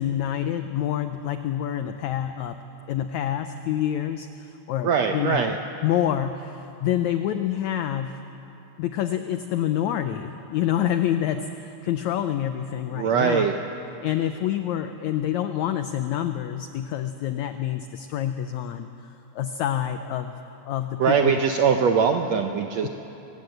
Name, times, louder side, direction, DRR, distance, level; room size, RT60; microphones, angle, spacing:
voice 1, 0.0-2.6 2.9-5.5 5.8-8.2 8.8-13.5 14.0-18.9 19.3-20.3 20.7-21.3 22.8-22.9, left 11 dB, 85° left, 8 dB, 1.6 m, -27 dB
voice 2, 4.8-5.6 12.9-13.5 21.0-22.9, right 6 dB, 75° right, 5 dB, 1.5 m, -21 dB
24.5 x 17.5 x 7.9 m, 2.9 s
omnidirectional pair, 4.1 m